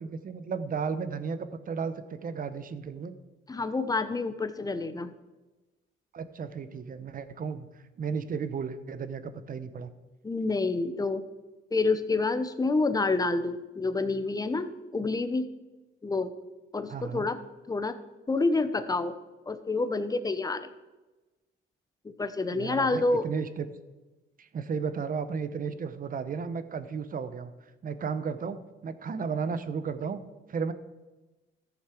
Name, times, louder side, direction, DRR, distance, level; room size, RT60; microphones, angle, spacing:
voice 1, 0.0-3.2 6.1-7.7 8.0-9.9 16.9-17.3 22.5-23.7 24.4-27.5 27.8-30.2 30.5-30.7, right 5 dB, 45° right, 12 dB, 0.9 m, -34 dB
voice 2, 3.5-5.1 10.2-11.2 11.7-15.5 16.0-16.3 16.7-17.4 17.7-18.0 18.3-19.1 19.5-20.7 22.0-23.3, left 3 dB, 20° left, 10 dB, 0.9 m, -28 dB
13.5 x 7.1 x 4.5 m, 1.1 s
cardioid pair, 90°, 20 cm